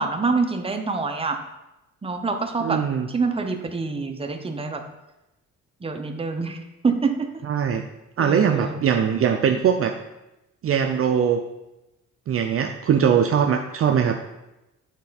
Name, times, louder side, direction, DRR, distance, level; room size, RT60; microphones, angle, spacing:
voice 1, 0.0-1.4 2.0-4.8 5.8-7.4 8.2-8.8, right 4 dB, 20° right, 5 dB, 0.8 m, -26 dB
voice 2, 2.6-3.1 7.5-7.8 8.2-10.0 10.6-11.4 12.3-14.2, right 7 dB, 50° right, 5 dB, 0.5 m, -21 dB
8.2 x 4.2 x 4.1 m, 0.96 s
cardioid pair, 90°, 30 cm